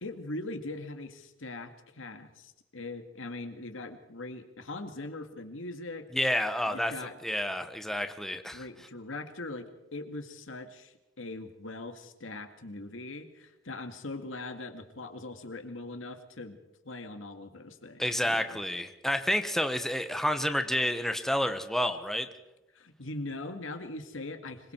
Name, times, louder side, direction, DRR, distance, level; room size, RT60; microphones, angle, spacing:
voice 1, 0.0-6.1 6.7-7.2 8.5-16.6 16.8-18.6 22.7-24.7, left 2 dB, 80° left, 7 dB, 2.1 m, -41 dB
voice 2, 6.1-6.9 7.2-8.6 18.0-22.3, equal, ahead, 7 dB, 1.2 m, -29 dB
25.5 x 22.5 x 4.6 m, 0.92 s
head